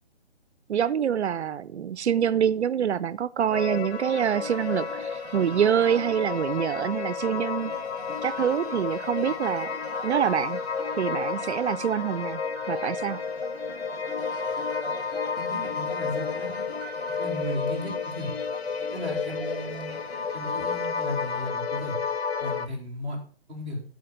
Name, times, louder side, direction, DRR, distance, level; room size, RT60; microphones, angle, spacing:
voice 1, 0.7-7.7 8.2-9.7 10.0-10.6 11.0-12.4 12.7-13.2, right 8 dB, 85° right, 0.6 m, -26 dB
sound 1, 3.5-22.7, left 5 dB, 70° left, 1.1 m, -32 dB
sound 2, 4.1-21.5, right 1 dB, 40° right, 1.8 m, -43 dB
voice 2, 15.4-16.6 17.2-18.3 18.9-19.9 20.3-22.0 22.4-23.2 23.5-23.8, left 1 dB, ahead, 2.8 m, -35 dB
14.0 x 5.1 x 5.1 m
hypercardioid pair, 170°, 33 cm